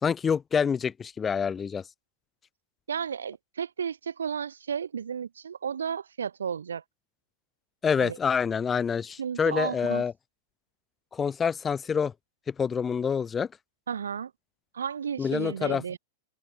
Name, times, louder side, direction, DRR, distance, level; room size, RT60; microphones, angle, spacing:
voice 1, 0.0-1.8 7.8-10.1 11.1-12.1 12.5-13.5 15.2-15.8, left 6 dB, 20° left, 3.3 m, -27 dB
voice 2, 2.9-6.8 8.0-8.2 9.2-10.0 13.9-14.3 14.7-16.0, right 7 dB, 80° right, 4.7 m, -33 dB
hypercardioid pair, 100°, 0 cm